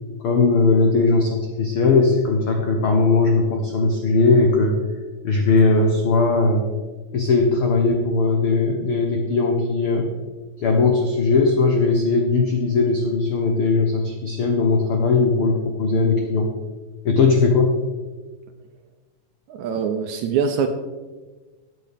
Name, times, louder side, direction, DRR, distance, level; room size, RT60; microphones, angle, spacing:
voice 1, 0.2-4.7 5.2-6.6 7.1-10.1 10.6-16.5 17.0-17.7, left 3 dB, 80° left, 2 dB, 1.2 m, -19 dB
voice 2, 19.5-20.7, right 7 dB, 75° right, 6 dB, 1.8 m, -23 dB
13.5 x 8.4 x 3.5 m, 1.3 s
omnidirectional pair, 3.8 m